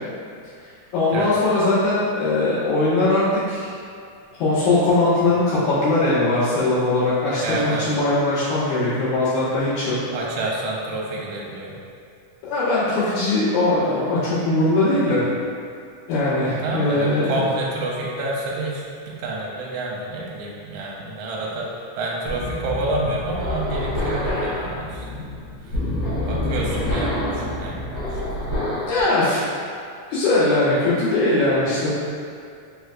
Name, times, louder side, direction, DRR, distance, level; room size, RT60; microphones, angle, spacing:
voice 1, 0.9-3.7 4.4-10.0 12.4-15.3 16.1-17.3 28.9-29.5 30.1-31.9, left 2 dB, 80° left, -12 dB, 2.8 m, -20 dB
voice 2, 7.4-7.9 10.1-11.7 16.4-21.7 22.0-25.2 25.6-25.8 26.2-28.8, right 2 dB, 75° right, -3 dB, 1.6 m, -29 dB
sound 1, 22.3-29.0, left 1 dB, 55° left, 2.2 m, -27 dB
5.5 x 3.2 x 2.4 m, 2.4 s
omnidirectional pair, 3.5 m